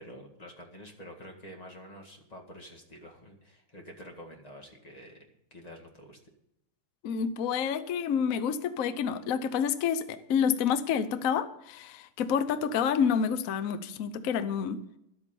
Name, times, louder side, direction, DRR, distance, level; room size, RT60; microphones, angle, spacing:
voice 1, 0.0-5.2 5.5-6.2, equal, 20° left, 2 dB, 1.9 m, -48 dB
voice 2, 7.0-14.8, left 7 dB, 60° left, 12 dB, 0.9 m, -28 dB
11.5 x 8.5 x 7.0 m, 0.82 s
omnidirectional pair, 2.3 m